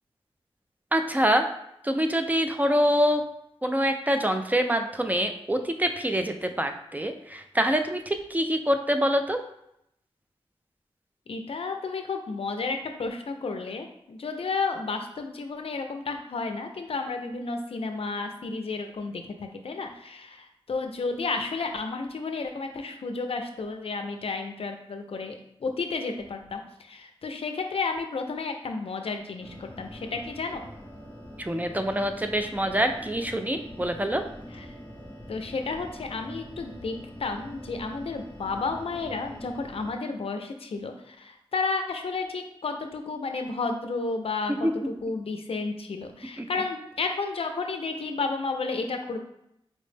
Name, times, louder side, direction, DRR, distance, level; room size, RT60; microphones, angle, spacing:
voice 1, 0.9-1.5 1.8-3.2 3.6-9.4 31.4-34.2 44.6-44.7 46.4-46.5, equal, 15° right, 6 dB, 0.3 m, -25 dB
voice 2, 11.3-30.6 34.5-34.7 35.3-49.2, left 4 dB, 75° left, 5 dB, 0.4 m, -32 dB
sound 1, 29.4-39.9, equal, 20° left, 0.7 m, -44 dB
4.2 x 2.0 x 3.2 m, 0.78 s
wide cardioid pair, 65°, 10 cm